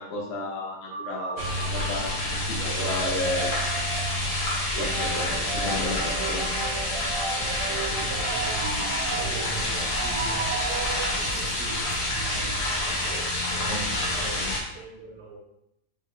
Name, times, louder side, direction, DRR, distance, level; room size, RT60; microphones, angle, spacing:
voice 1, 0.0-3.9 4.8-6.5 13.7-13.8 14.3-14.6, left 2 dB, 65° left, -1 dB, 0.6 m, -33 dB
sound 1, 0.9-11.6, right 4 dB, 50° right, 0.7 m, -35 dB
sound 2, 1.4-14.6, left 1 dB, 85° left, 1.3 m, -28 dB
voice 2, 7.3-15.4, right 3 dB, 80° right, -7 dB, 1.3 m, -39 dB
4.6 x 2.1 x 2.4 m, 0.83 s
omnidirectional pair, 1.6 m